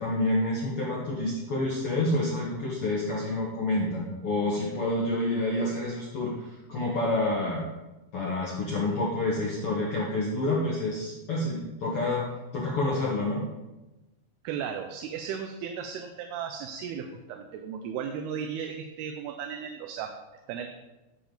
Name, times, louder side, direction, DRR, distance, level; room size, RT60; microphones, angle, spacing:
voice 1, 0.0-7.6 8.1-13.4, left 2 dB, 75° left, -4 dB, 1.3 m, -28 dB
voice 2, 14.4-20.2 20.5-20.7, right 7 dB, 85° right, 5 dB, 2.6 m, -35 dB
12.0 x 6.8 x 3.9 m, 1.1 s
omnidirectional pair, 4.6 m